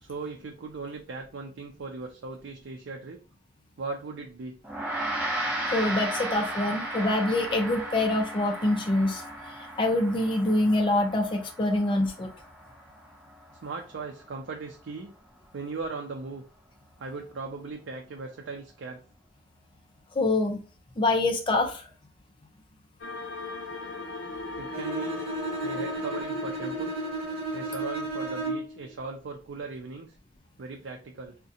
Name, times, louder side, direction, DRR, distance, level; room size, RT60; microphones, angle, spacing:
voice 1, 0.0-3.2 3.8-4.6 13.6-15.1 15.5-16.4 17.0-19.0 24.6-25.2 25.6-27.0 27.5-30.2 30.6-31.4, right 4 dB, 80° right, 2 dB, 0.5 m, -38 dB
Gong, 4.6-14.2, right 1 dB, 10° right, 1.0 m, -35 dB
voice 2, 5.7-9.2 9.8-12.3 20.2-20.6 21.0-21.9, left 2 dB, 25° left, 3 dB, 0.4 m, -25 dB
sound 1, 23.0-28.4, left 2 dB, 80° left, 0.5 m, -38 dB
Bowed string instrument, 24.7-28.8, right 2 dB, 30° right, 1.2 m, -33 dB
3.6 x 2.1 x 2.8 m, 0.37 s
head